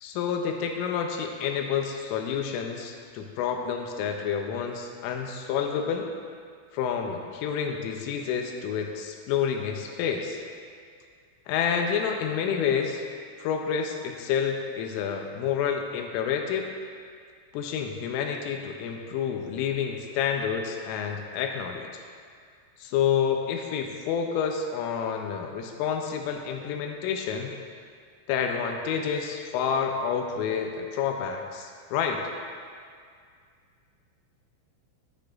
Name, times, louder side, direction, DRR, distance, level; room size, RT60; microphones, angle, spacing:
voice 1, 0.0-6.1 6.7-10.4 11.5-13.0 13.4-16.7 17.5-21.9 22.8-27.5 28.3-32.2, left 7 dB, 85° left, 3 dB, 3.1 m, -29 dB
13.0 x 11.5 x 2.5 m, 2.1 s
omnidirectional pair, 5.9 m